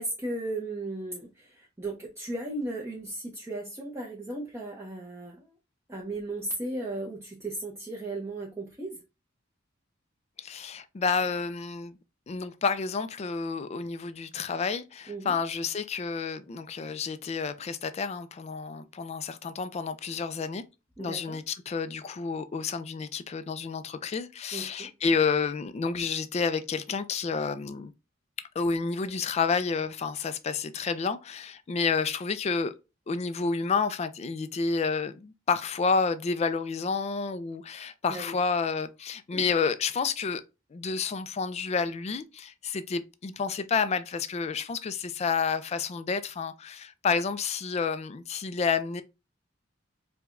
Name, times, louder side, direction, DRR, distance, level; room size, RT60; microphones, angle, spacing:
voice 1, 0.0-5.5 5.9-9.0 15.1-15.3 21.0-21.4 24.5-24.9 38.1-38.4 39.3-39.4, right 2 dB, 15° right, 0.6 m, -36 dB
voice 2, 10.4-12.0 12.3-20.6 21.0-27.9 28.6-32.7 33.1-40.4 40.7-49.0, left 5 dB, 35° left, 0.3 m, -30 dB
4.6 x 2.2 x 2.5 m
head